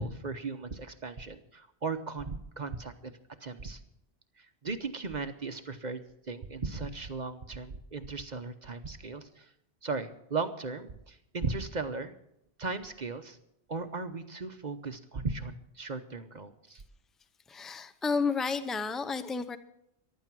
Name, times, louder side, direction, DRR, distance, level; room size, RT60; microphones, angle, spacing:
voice 1, 0.0-3.1 3.4-3.8 4.4-9.5 9.8-12.1 12.6-13.4 13.7-16.8, right 4 dB, 45° right, 9 dB, 0.9 m, -37 dB
voice 2, 17.5-19.6, left 5 dB, ahead, 11 dB, 0.6 m, -31 dB
15.0 x 12.0 x 6.1 m, 0.78 s
omnidirectional pair, 1.1 m